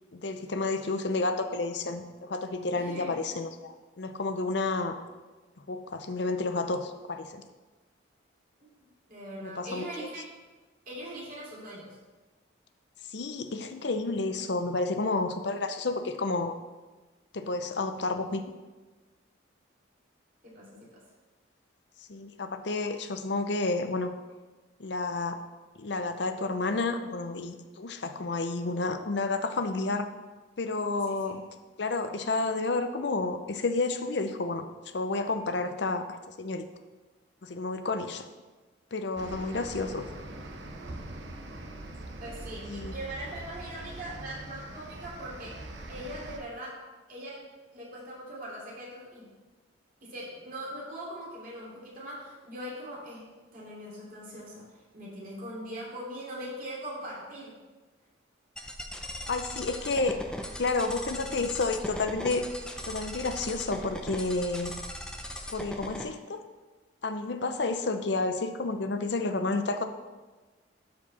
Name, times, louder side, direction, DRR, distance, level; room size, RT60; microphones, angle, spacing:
voice 1, 0.1-5.0 5.7-7.4 9.4-10.1 13.1-16.5 17.3-18.4 22.1-24.1 24.8-25.4 25.8-30.1 30.6-31.4 31.8-34.6 34.9-36.1 36.4-36.7 37.4-38.2 38.9-40.1 42.6-42.9 59.3-60.2 60.6-62.5 62.9-64.7 65.5-66.4 67.0-69.8, left 3 dB, 60° left, 8 dB, 0.6 m, -30 dB
voice 2, 2.7-3.1 8.8-10.2 10.9-12.0 20.4-20.9 31.1-31.3 42.2-46.8 47.1-47.5 47.7-49.3 50.0-57.6, right 1 dB, 45° right, -5 dB, 2.8 m, -41 dB
sound 1, 39.2-46.4, right 1 dB, 65° right, 0.9 m, -42 dB
sound 2, 58.6-66.0, left 1 dB, 5° left, 0.5 m, -39 dB
12.0 x 4.7 x 4.2 m, 1.2 s
head